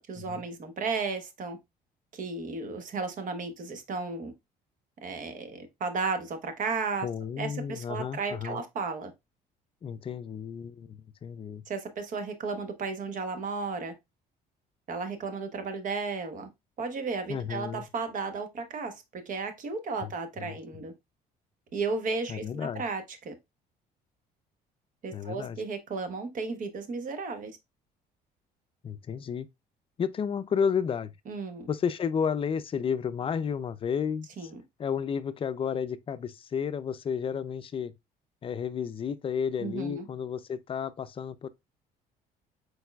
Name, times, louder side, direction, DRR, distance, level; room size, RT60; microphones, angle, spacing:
voice 1, 0.0-1.6 2.1-4.3 5.0-7.1 7.4-9.1 11.7-13.9 14.9-16.5 16.8-20.9 21.7-23.3 25.0-27.5 31.3-31.7 34.4-34.6 39.6-40.1, right 4 dB, 50° right, 1.1 m, -34 dB
voice 2, 7.0-8.6 9.8-11.6 17.3-17.9 20.0-20.1 20.4-20.6 22.3-22.8 25.1-25.6 28.8-29.5 30.0-31.1 31.7-34.5 34.8-37.9 38.4-41.5, left 7 dB, 35° left, 0.4 m, -32 dB
4.7 x 4.3 x 2.3 m
cardioid pair, 110°, 17 cm